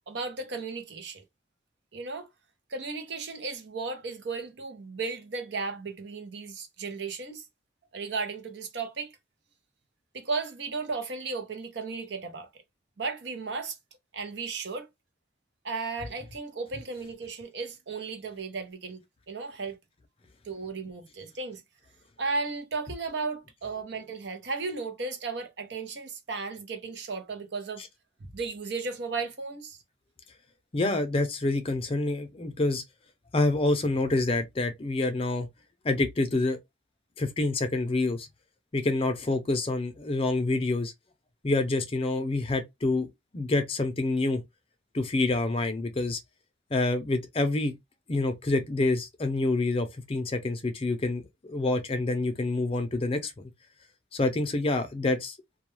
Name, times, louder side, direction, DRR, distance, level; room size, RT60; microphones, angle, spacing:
voice 1, 0.1-1.2 1.9-2.3 2.7-7.5 7.9-9.1 10.1-12.5 13.0-13.8 14.1-14.9 15.6-19.8 20.4-21.6 22.2-27.8 28.2-29.8, right 4 dB, 70° right, 0.7 m, -35 dB
voice 2, 30.7-32.8 33.3-35.5 35.8-36.6 37.2-38.3 38.7-40.9 41.4-43.1 43.3-44.4 44.9-46.2 46.7-47.7 48.1-51.2 51.5-53.5 54.1-55.4, left 2 dB, 30° left, 0.5 m, -27 dB
2.3 x 2.2 x 3.1 m
head